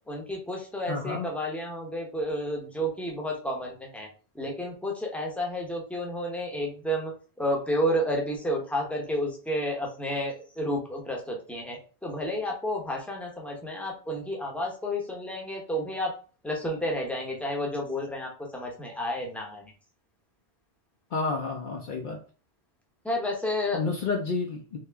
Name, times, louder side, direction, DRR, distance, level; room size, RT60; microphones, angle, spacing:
voice 1, 0.1-4.1 4.3-7.1 7.4-16.1 16.4-19.7 23.0-23.9, equal, ahead, -1 dB, 0.7 m, -31 dB
voice 2, 0.9-1.3 21.1-22.2 23.7-24.8, left 4 dB, 60° left, 1 dB, 0.7 m, -30 dB
3.0 x 2.8 x 3.4 m, 0.38 s
omnidirectional pair, 1.0 m